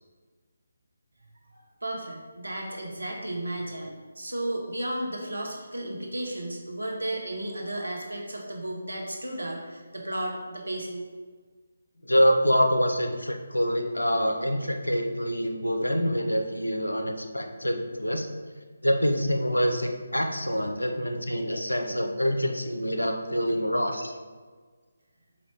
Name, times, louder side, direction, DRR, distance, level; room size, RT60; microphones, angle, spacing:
voice 1, 1.5-11.0, right 1 dB, 70° right, -1 dB, 0.9 m, -34 dB
voice 2, 12.0-18.3 18.8-24.1, equal, 80° left, 4 dB, 0.5 m, -26 dB
4.7 x 2.6 x 3.4 m, 1.5 s
figure-of-eight pair, 150°, 0 cm